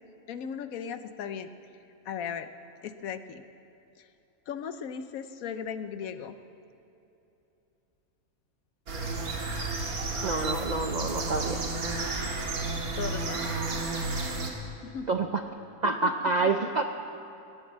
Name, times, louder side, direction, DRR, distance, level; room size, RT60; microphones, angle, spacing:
voice 1, 0.3-1.5 2.0-2.5 2.8-3.5 4.0-4.1 4.5-6.4 13.0-13.4 14.8-15.1 15.8-16.5, left 7 dB, 75° left, 10 dB, 1.1 m, -37 dB
sound 1, 8.9-14.5, right 3 dB, 75° right, 2.1 m, -32 dB
voice 2, 10.2-11.6 15.1-15.4 15.8-16.8, right 3 dB, 60° right, 6 dB, 0.4 m, -27 dB
18.0 x 9.6 x 7.3 m, 2.9 s
omnidirectional pair, 1.6 m